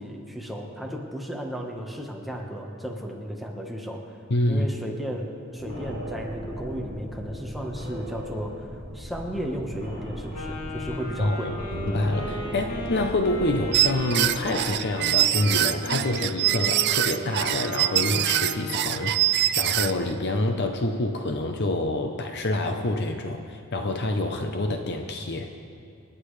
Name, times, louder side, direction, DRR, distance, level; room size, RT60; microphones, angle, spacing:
voice 1, 0.0-4.2 4.5-11.5, equal, ahead, 0 dB, 1.2 m, -34 dB
voice 2, 4.3-4.7 11.2-25.5, left 2 dB, 50° left, 4 dB, 0.8 m, -27 dB
sound 1, 5.6-15.1, equal, 25° left, 3.6 m, -38 dB
Wind instrument woodwind instrument, 10.3-18.9, equal, 80° left, 2.6 m, -37 dB
sound 2, 13.7-20.1, right 13 dB, 50° right, 0.4 m, -24 dB
28.5 x 9.8 x 3.3 m, 2.4 s
head